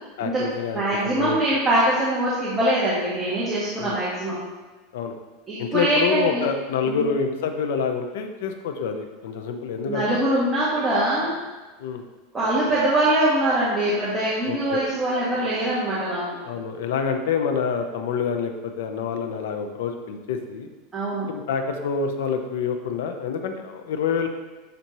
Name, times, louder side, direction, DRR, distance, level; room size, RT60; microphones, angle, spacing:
voice 1, 0.2-1.4 3.8-4.0 4.9-5.2 5.6-10.2 11.8-12.0 14.5-14.8 16.4-20.7 21.3-24.3, left 6 dB, 80° left, 6 dB, 0.9 m, -27 dB
voice 2, 0.7-4.4 5.5-6.5 6.9-7.1 9.9-11.3 12.3-16.2 20.9-21.3, right 1 dB, 10° right, -10 dB, 1.7 m, -23 dB
12.0 x 4.4 x 3.2 m, 1.2 s
supercardioid pair, 160°, 0 cm